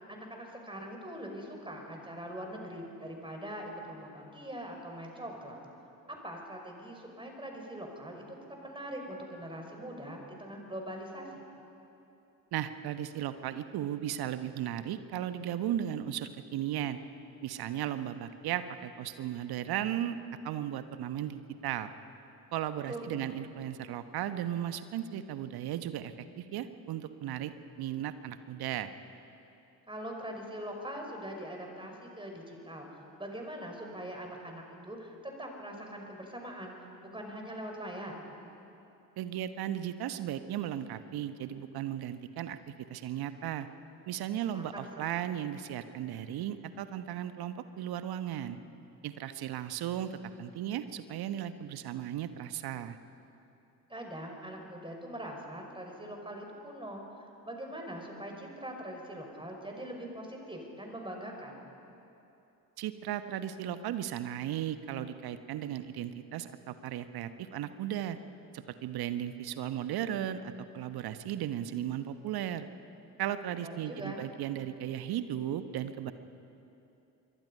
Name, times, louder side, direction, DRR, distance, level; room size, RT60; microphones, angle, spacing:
voice 1, 0.1-5.6 6.1-11.4 22.9-23.3 29.9-38.2 44.5-45.1 53.9-61.6 73.6-74.2, right 1 dB, 10° right, 2 dB, 5.7 m, -42 dB
voice 2, 12.5-17.0 17.4-20.2 20.4-21.9 22.5-27.5 27.8-28.9 39.2-43.7 44.1-48.6 49.0-53.0 62.8-68.2 68.5-72.7 73.2-76.1, right 11 dB, 55° right, 11 dB, 1.2 m, -36 dB
26.5 x 23.0 x 5.5 m, 2.8 s
figure-of-eight pair, 45°, 44 cm